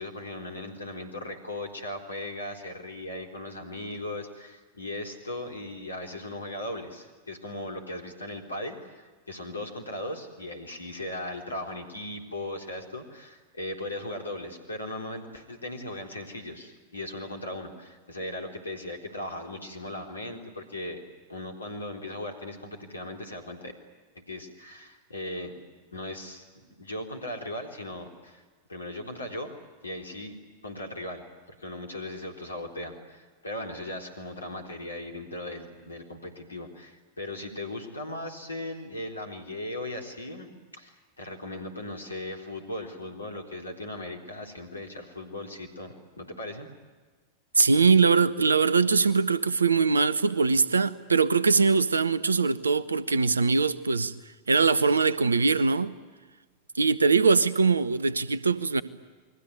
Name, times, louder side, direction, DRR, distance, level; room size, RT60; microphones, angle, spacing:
voice 1, 0.0-21.0 21.3-23.7 24.3-25.5 25.9-28.4 28.7-29.5 29.8-30.3 30.6-31.2 31.6-46.7 54.8-55.0, left 1 dB, 80° left, 3.9 m, -38 dB
voice 2, 47.6-54.1 54.5-55.9 56.7-58.8, right 4 dB, 75° right, 1.1 m, -22 dB
29.0 x 22.0 x 9.4 m
figure-of-eight pair, 90°, 0 cm